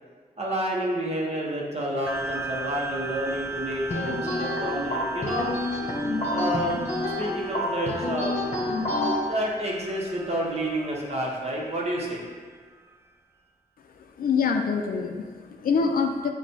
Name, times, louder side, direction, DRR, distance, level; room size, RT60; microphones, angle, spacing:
voice 1, 0.4-5.5 6.3-6.8 7.2-8.3 9.2-12.2, right 1 dB, 40° right, -3 dB, 0.9 m, -29 dB
sound 1, 2.1-12.9, right 3 dB, 15° right, 0.4 m, -38 dB
sound 2, 3.9-9.2, left 2 dB, 40° left, 0.9 m, -28 dB
voice 2, 14.0-16.3, left 5 dB, 65° left, 4 dB, 0.4 m, -25 dB
6.0 x 2.3 x 2.7 m, 1.5 s
cardioid pair, 65°, 16 cm